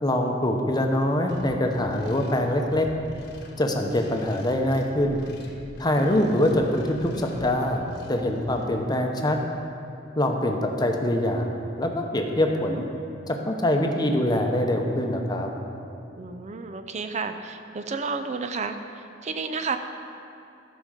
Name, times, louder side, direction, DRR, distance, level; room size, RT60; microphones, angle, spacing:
voice 1, 0.0-2.9 3.6-5.2 5.8-7.8 8.1-9.4 10.2-12.8 13.3-15.5, left 1 dB, 20° left, 3 dB, 0.9 m, -24 dB
sound 1, 1.3-8.7, equal, 65° left, 1.3 m, -44 dB
voice 2, 16.2-19.8, right 4 dB, 40° right, 8 dB, 0.5 m, -32 dB
14.0 x 5.2 x 6.4 m, 2.6 s
head